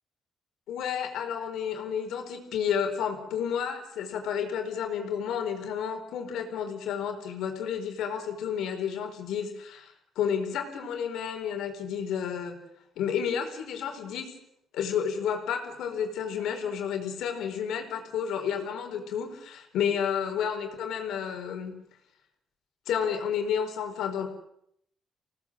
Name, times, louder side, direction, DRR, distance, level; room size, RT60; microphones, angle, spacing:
voice 1, 0.7-12.6 13.0-14.3 14.7-21.8 22.9-24.3, left 8 dB, 85° left, 5 dB, 4.5 m, -31 dB
26.5 x 18.0 x 7.6 m, 0.73 s
cardioid pair, 90°, 0 cm